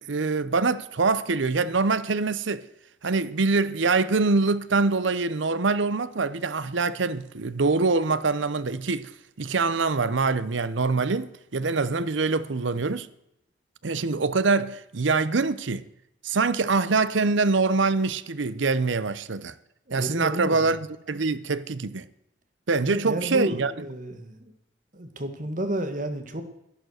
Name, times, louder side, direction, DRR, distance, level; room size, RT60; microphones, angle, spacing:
voice 1, 0.1-2.6 3.0-9.1 9.4-13.1 13.8-15.8 16.2-19.5 19.9-22.1 22.7-23.7, right 3 dB, 80° right, 0.7 m, -24 dB
voice 2, 19.9-20.7 22.8-24.5 24.9-26.4, right 1 dB, 40° right, 1.8 m, -31 dB
12.0 x 11.5 x 6.4 m
head